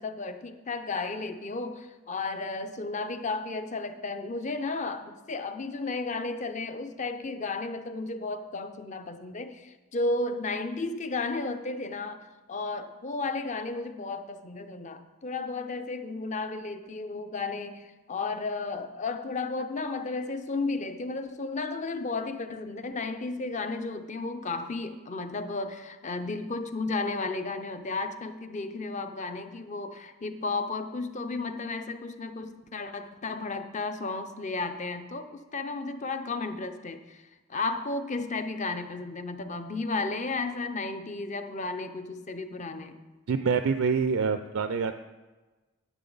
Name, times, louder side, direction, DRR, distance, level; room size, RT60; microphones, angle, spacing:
voice 1, 0.0-43.0, left 3 dB, 35° left, 8 dB, 0.6 m, -33 dB
voice 2, 43.3-44.9, right 5 dB, 70° right, 9 dB, 0.4 m, -26 dB
10.0 x 8.8 x 4.0 m, 1.2 s
head